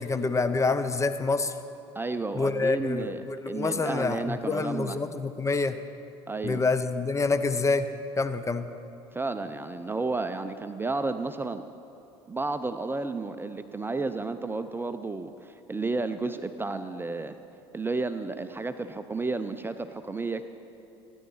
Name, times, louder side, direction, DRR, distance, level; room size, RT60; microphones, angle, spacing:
voice 1, 0.0-1.5 2.3-5.8 6.4-7.9 8.2-8.7, left 3 dB, 20° left, 10 dB, 0.8 m, -27 dB
voice 2, 1.9-5.0 6.3-6.6 9.1-11.6 12.3-17.4 17.7-20.4, right 3 dB, 15° right, 9 dB, 0.6 m, -32 dB
16.5 x 10.5 x 5.6 m, 2.7 s
hypercardioid pair, 70°, 15 cm